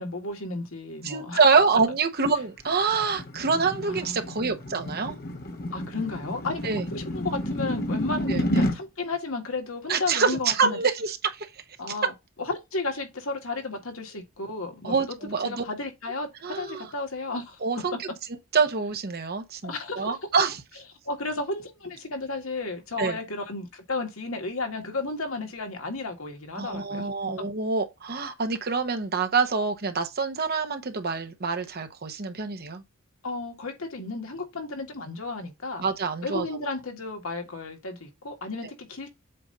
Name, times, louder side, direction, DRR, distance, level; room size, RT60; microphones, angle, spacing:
voice 1, 0.0-1.4 3.9-4.5 5.7-10.8 11.8-12.1 12.4-15.2 15.4-17.6 19.6-20.3 21.1-27.1 33.2-35.8 36.2-39.1, left 3 dB, 85° left, 1.8 m, -33 dB
voice 2, 1.0-5.1 6.6-6.8 8.3-8.6 9.9-11.5 14.8-15.6 16.4-16.8 17.6-18.0 18.5-20.6 23.0-23.2 26.6-32.8 35.8-36.5, right 4 dB, 50° right, 0.9 m, -26 dB
sound 1, 2.3-8.8, left 1 dB, 45° left, 1.0 m, -30 dB
7.7 x 2.7 x 5.3 m
head